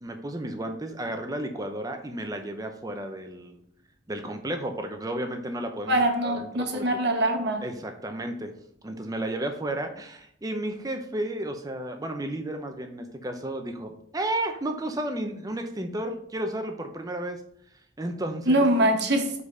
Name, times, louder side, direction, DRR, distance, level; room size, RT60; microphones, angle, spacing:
voice 1, 0.0-3.6 4.1-7.0 7.6-8.5 8.8-17.4 18.0-18.7, right 1 dB, 20° right, 6 dB, 0.7 m, -33 dB
voice 2, 5.9-7.6 18.5-19.4, right 1 dB, 60° right, 3 dB, 1.1 m, -23 dB
5.3 x 4.0 x 4.8 m, 0.67 s
head